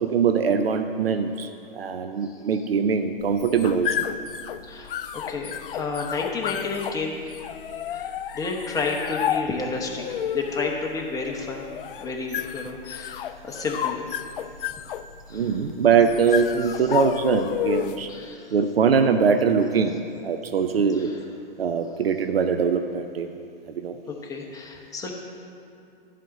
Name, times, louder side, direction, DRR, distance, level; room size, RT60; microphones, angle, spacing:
voice 1, 0.0-1.5 1.7-4.0 15.3-18.1 18.5-21.1 21.6-23.3 23.8-24.0, right 6 dB, 85° right, 7 dB, 0.6 m, -22 dB
sound 1, 3.2-18.1, left 10 dB, 65° left, 0.4 m, -32 dB
voice 2, 4.6-7.3 7.9-10.0 10.3-11.7 12.0-14.1 15.3-15.6 16.6-16.9 18.1-18.5 20.9-21.2 24.1-25.1, left 4 dB, 10° left, 0 dB, 1.0 m, -31 dB
11.0 x 4.2 x 7.4 m, 2.6 s
hypercardioid pair, 125°, 29 cm